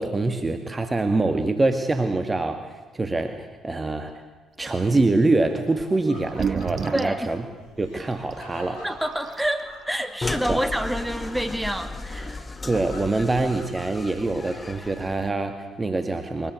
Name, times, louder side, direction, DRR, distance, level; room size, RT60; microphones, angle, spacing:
voice 1, 0.0-4.2 4.6-7.4 7.8-8.8 10.5-10.6 12.7-16.5, right 2 dB, 25° right, 6 dB, 2.1 m, -25 dB
Laughter, 4.9-14.9, left 1 dB, 70° left, 8.0 m, -46 dB
sound 1, 5.8-5.9 6.2-7.2 8.3-8.4 9.0-9.1 9.3-9.7, right 6 dB, 45° right, 0.7 m, -28 dB
voice 2, 6.9-7.4 8.8-12.4, right 1 dB, 5° right, 7 dB, 2.7 m, -28 dB
sound 2, 10.2-15.3, left 3 dB, 30° left, 1.7 m, -35 dB
23.0 x 20.0 x 8.3 m, 1.2 s
hypercardioid pair, 50°, 0 cm